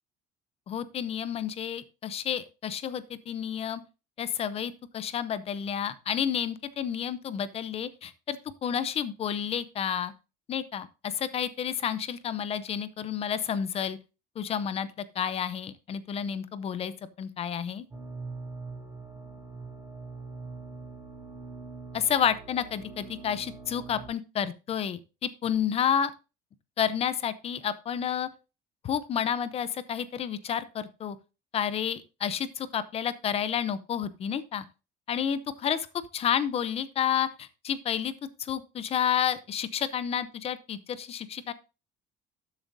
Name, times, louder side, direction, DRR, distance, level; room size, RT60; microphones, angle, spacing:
voice 1, 0.7-3.8 4.2-10.1 10.5-14.0 14.4-16.9 17.2-17.9 21.9-26.1 26.8-28.3 28.8-31.2 31.5-34.6 35.1-35.9 36.1-38.1 38.4-41.5, left 8 dB, 30° left, 15 dB, 0.6 m, -30 dB
sound 1, 17.9-24.1, right 3 dB, 20° right, 3.6 m, -43 dB
12.5 x 7.3 x 2.6 m, 0.30 s
cardioid pair, 175°, 20 cm